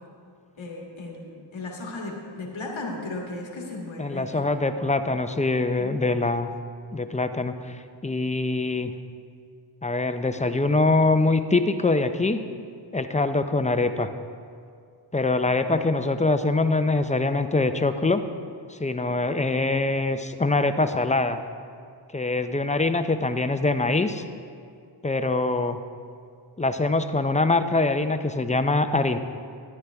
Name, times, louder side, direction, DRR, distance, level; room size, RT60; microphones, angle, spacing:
voice 1, 0.6-4.3 5.8-5.9 15.6-15.7, left 2 dB, 85° left, -1 dB, 1.8 m, -35 dB
voice 2, 4.0-6.5 6.9-8.9 9.8-12.4 12.9-14.1 15.1-18.2 18.7-21.4 22.1-24.2 25.0-25.8 26.6-29.2, left 3 dB, 15° left, 9 dB, 0.6 m, -24 dB
13.0 x 10.0 x 3.5 m, 2.3 s
cardioid pair, 45°, 46 cm